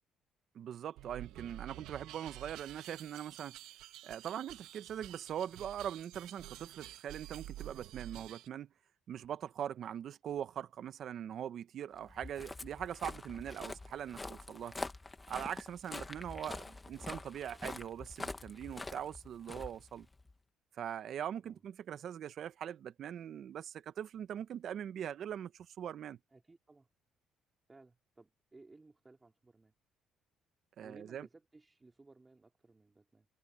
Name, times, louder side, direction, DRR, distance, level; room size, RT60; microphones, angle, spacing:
voice 1, 0.5-3.6 4.0-8.7 9.1-14.7 15.3-20.1 20.7-26.2 30.8-31.3, right 9 dB, 60° right, 1.1 m, -42 dB
sound 1, 1.0-8.5, right 15 dB, 85° right, 1.6 m, -50 dB
Walk footsteps, 12.0-20.3, left 2 dB, 20° left, 1.5 m, -45 dB
voice 2, 26.3-26.9 27.7-29.7 30.8-33.3, right 3 dB, 20° right, 3.7 m, -59 dB
supercardioid pair, 85°, 0 cm